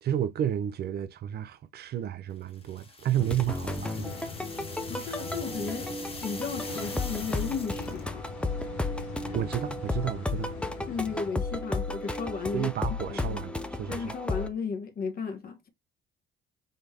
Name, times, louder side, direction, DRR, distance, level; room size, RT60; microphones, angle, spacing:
voice 1, 0.0-4.2 9.3-10.5 12.5-14.1, right 10 dB, 50° right, 0.6 m, -31 dB
sound 1, 2.5-8.1, left 3 dB, 25° left, 1.5 m, -44 dB
sound 2, 3.2-14.5, left 2 dB, 5° left, 0.6 m, -34 dB
sound 3, 3.7-11.3, left 6 dB, 75° left, 1.3 m, -42 dB
voice 2, 4.9-5.9 6.2-8.2 10.9-12.7 13.1-13.4 13.9-15.7, left 5 dB, 45° left, 1.3 m, -34 dB
3.9 x 3.1 x 2.8 m
hypercardioid pair, 65°, 21 cm